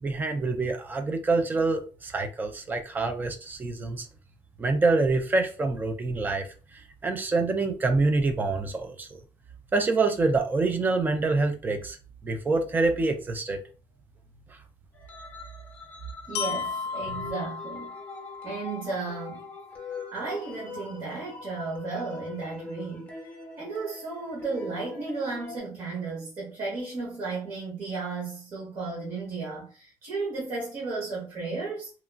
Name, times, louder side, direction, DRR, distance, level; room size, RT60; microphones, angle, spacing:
voice 1, 0.0-4.1 4.6-6.5 7.0-9.1 9.7-12.0 12.2-13.6, right 3 dB, 20° right, 0.3 m, -26 dB
sound 1, 14.9-25.6, left 4 dB, 15° left, 0.7 m, -43 dB
Glockenspiel, 16.3-20.3, left 5 dB, 85° left, 0.4 m, -36 dB
voice 2, 16.3-17.9 18.4-19.4 20.1-23.1 23.6-31.9, right 3 dB, 45° right, 1.0 m, -34 dB
2.9 x 2.3 x 2.3 m
cardioid pair, 180°, 9 cm